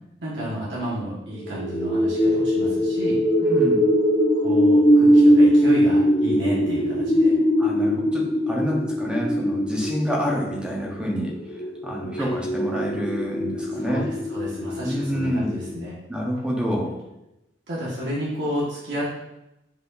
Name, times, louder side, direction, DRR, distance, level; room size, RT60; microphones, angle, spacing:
voice 1, 0.2-3.2 4.3-7.3 12.2-12.3 13.8-15.9 17.7-19.1, equal, 80° right, -7 dB, 1.7 m, -31 dB
sound 1, 1.4-15.8, equal, 35° left, 1.1 m, -21 dB
voice 2, 3.4-3.8 7.6-11.3 11.8-14.1 14.8-15.6 16.1-16.9, equal, 5° right, -3 dB, 1.2 m, -27 dB
8.2 x 4.9 x 2.7 m, 0.90 s
head